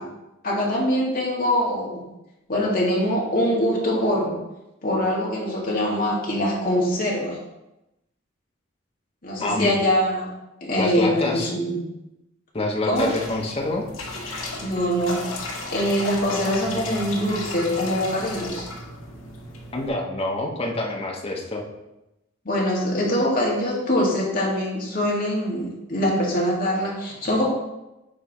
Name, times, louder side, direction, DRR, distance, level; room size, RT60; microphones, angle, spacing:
voice 1, 0.4-2.1 2.5-4.4 4.8-7.4 9.2-10.3 10.6-11.8 12.9-13.1 14.6-15.2 15.7-18.7 22.5-27.4, equal, 50° left, -4 dB, 1.9 m, -23 dB
voice 2, 9.4-9.7 10.8-11.5 12.5-13.8 19.7-21.6, left 2 dB, 30° left, 1 dB, 1.0 m, -26 dB
sound 1, 12.9-19.9, left 2 dB, 80° left, 1.0 m, -34 dB
8.7 x 3.3 x 4.2 m, 0.94 s
head